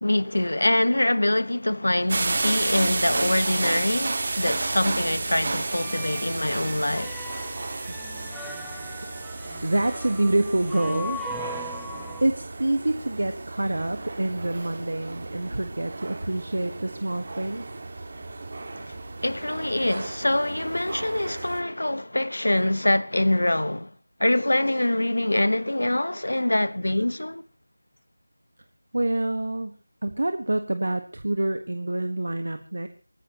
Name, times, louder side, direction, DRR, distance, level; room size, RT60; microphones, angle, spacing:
voice 1, 0.0-7.1 18.8-19.0 19.2-23.9 24.2-27.4, left 1 dB, 80° left, 1.3 m, -24 dB
sound 1, 2.1-21.6, right 3 dB, 40° right, 1.9 m, -32 dB
sound 2, 5.7-12.2, left 1 dB, ahead, 0.9 m, -39 dB
voice 2, 8.7-9.1 9.6-11.2 12.2-17.6 28.9-29.8 30.0-32.9, right 1 dB, 65° right, 1.5 m, -27 dB
23.5 x 15.0 x 3.0 m
figure-of-eight pair, 170°, 0 cm